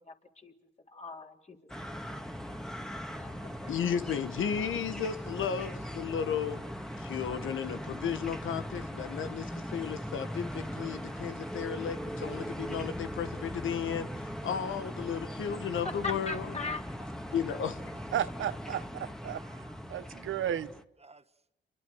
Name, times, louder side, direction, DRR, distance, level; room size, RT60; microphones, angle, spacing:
voice 1, 0.0-0.5 0.9-1.6 1.9-2.2 2.5-2.7 2.9-3.7 15.8-16.8, left 3 dB, 30° left, 4.1 m, -40 dB
sound 1, 1.7-20.8, equal, 5° left, 2.0 m, -40 dB
voice 2, 3.7-6.6 7.0-16.5 17.3-17.8, left 7 dB, 75° left, 1.4 m, -34 dB
voice 3, 16.6-17.4 17.9-18.0 18.7-18.8 19.2-20.3 21.0-21.3, right 3 dB, 30° right, 1.6 m, -57 dB
voice 4, 18.1-19.4 19.9-20.7, right 10 dB, 75° right, 1.0 m, -33 dB
28.5 x 24.0 x 6.4 m
cardioid pair, 65°, 21 cm